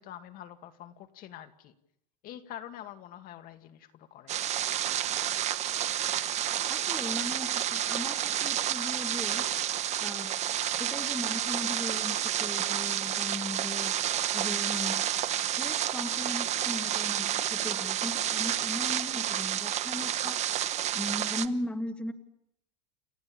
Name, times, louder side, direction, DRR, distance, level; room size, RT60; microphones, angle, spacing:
voice 1, 0.0-1.7 2.2-4.4, left 11 dB, 40° left, 8 dB, 2.0 m, -46 dB
sound 1, 4.3-21.5, right 11 dB, 30° right, 1.1 m, -30 dB
voice 2, 6.7-9.5 10.0-10.3 10.8-13.9 14.3-15.0 15.6-20.4 20.9-22.1, left 1 dB, 5° left, 6 dB, 1.7 m, -38 dB
29.5 x 13.5 x 8.8 m, 0.77 s
supercardioid pair, 130°, 21 cm